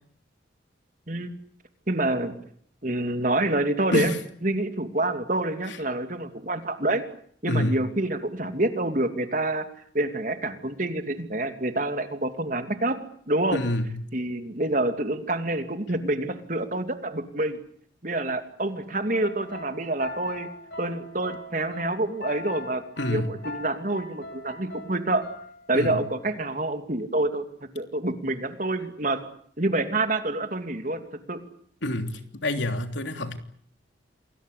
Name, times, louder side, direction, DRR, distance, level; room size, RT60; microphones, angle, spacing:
voice 1, 1.9-2.4 2.8-4.1 4.4-7.0 7.4-9.7 9.9-13.0 13.3-13.6 14.1-17.6 18.0-20.5 20.8-22.8 23.1-25.2 25.7-27.5 27.7-29.2 29.6-31.0 31.3-31.4, right 2 dB, 45° right, 8 dB, 2.8 m, -27 dB
voice 2, 7.5-7.8 13.5-14.0 23.0-23.3 25.7-26.0 31.8-33.4, left 1 dB, 75° left, 7 dB, 3.2 m, -27 dB
sound 1, 19.1-26.4, left 1 dB, 55° left, 3.2 m, -41 dB
28.0 x 21.0 x 8.5 m, 0.63 s
head